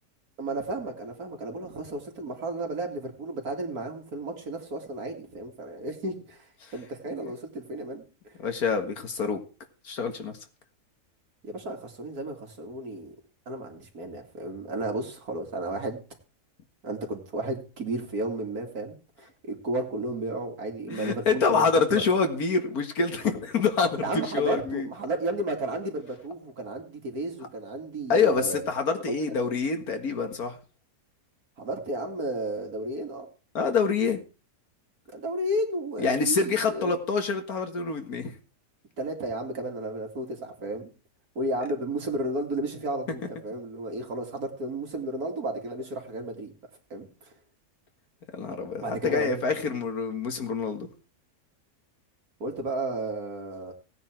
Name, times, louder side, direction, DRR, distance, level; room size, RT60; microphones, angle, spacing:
voice 1, 0.4-6.5 6.7-8.4 11.4-13.1 13.5-16.0 16.8-22.0 24.0-28.7 29.1-29.2 31.6-33.3 35.1-37.0 39.0-40.9 41.4-46.5 46.9-47.3 48.8-49.4 49.7-49.8 52.4-53.7, right 1 dB, 80° right, 3 dB, 2.8 m, -33 dB
voice 2, 8.4-9.4 9.8-10.3 20.9-24.9 28.1-30.6 33.5-34.2 36.0-38.3 48.3-50.9, left 5 dB, 80° left, 6 dB, 2.2 m, -26 dB
17.0 x 9.3 x 4.5 m, 0.35 s
omnidirectional pair, 1.6 m